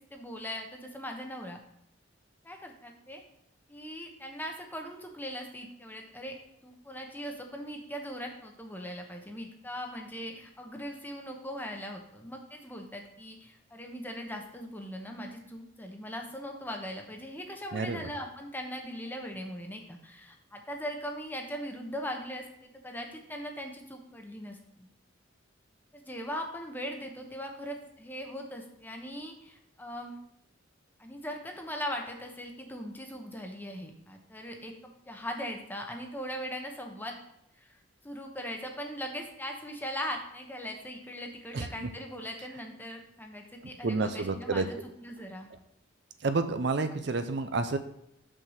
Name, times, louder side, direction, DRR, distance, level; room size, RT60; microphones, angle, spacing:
voice 1, 0.1-1.6 2.4-3.2 3.7-6.3 6.6-24.9 25.9-30.2 31.0-37.1 37.6-37.8 38.0-45.5, equal, 10° left, 2 dB, 1.0 m, -40 dB
voice 2, 41.5-41.9 43.8-44.7 46.2-47.8, right 3 dB, 60° right, 9 dB, 0.5 m, -29 dB
6.2 x 4.5 x 6.5 m, 0.79 s
head